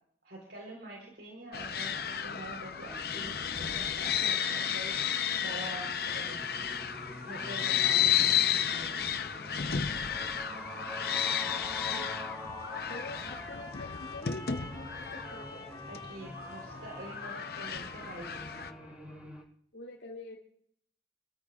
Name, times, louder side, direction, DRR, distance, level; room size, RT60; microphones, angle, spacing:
voice 1, 0.2-6.7 7.3-9.0 15.9-18.5, right 1 dB, 75° right, -1 dB, 3.9 m, -46 dB
sound 1, 1.5-18.7, left 9 dB, 55° left, 0.7 m, -32 dB
sound 2, 2.9-19.4, left 1 dB, 10° right, 5.0 m, -46 dB
Trumpet, 11.2-19.0, left 3 dB, 25° left, 3.5 m, -48 dB
voice 2, 11.9-12.3 12.9-15.5 19.7-20.4, left 2 dB, 80° left, -4 dB, 2.5 m, -45 dB
30.0 x 13.5 x 2.4 m, 0.67 s
head